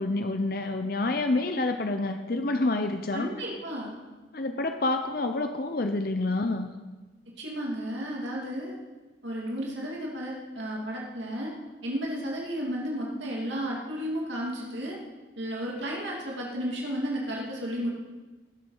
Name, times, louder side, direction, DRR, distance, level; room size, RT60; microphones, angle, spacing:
voice 1, 0.0-3.3 4.3-6.7, left 2 dB, 50° left, 6 dB, 0.7 m, -28 dB
voice 2, 3.1-4.0 7.4-8.7 9.2-11.5 11.8-15.0 15.4-17.9, equal, 75° right, -3 dB, 2.6 m, -33 dB
19.0 x 7.6 x 5.6 m, 1.2 s
head